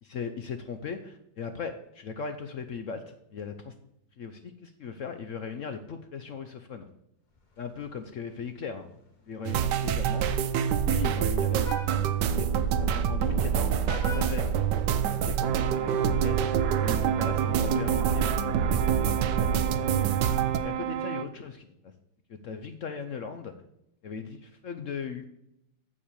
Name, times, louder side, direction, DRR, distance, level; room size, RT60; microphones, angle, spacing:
voice 1, 0.0-3.7 4.2-6.9 7.6-8.9 9.3-10.3 10.9-12.1 12.4-12.5 12.8-14.5 14.8-16.4 16.8-19.6 20.2-20.3 20.6-21.7 22.3-23.5 24.0-25.2, left 6 dB, 65° left, 8 dB, 0.7 m, -38 dB
Vehicle horn car horn honking, 7.3-15.5, left 2 dB, 30° left, 1.0 m, -47 dB
sound 1, 9.4-20.6, right 8 dB, 70° right, 1.2 m, -26 dB
sound 2, 15.4-21.3, right 9 dB, 90° right, 1.4 m, -32 dB
7.4 x 7.3 x 6.8 m, 0.82 s
omnidirectional pair, 2.0 m